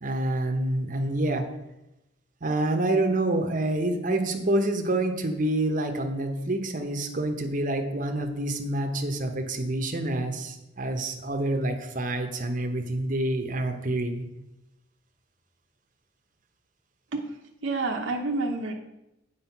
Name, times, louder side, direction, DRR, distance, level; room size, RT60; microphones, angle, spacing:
voice 1, 0.0-1.4 2.4-14.2, right 1 dB, 40° right, 4 dB, 0.9 m, -27 dB
voice 2, 17.6-18.7, right 3 dB, 70° right, 1 dB, 0.8 m, -28 dB
8.2 x 4.9 x 5.8 m, 0.92 s
head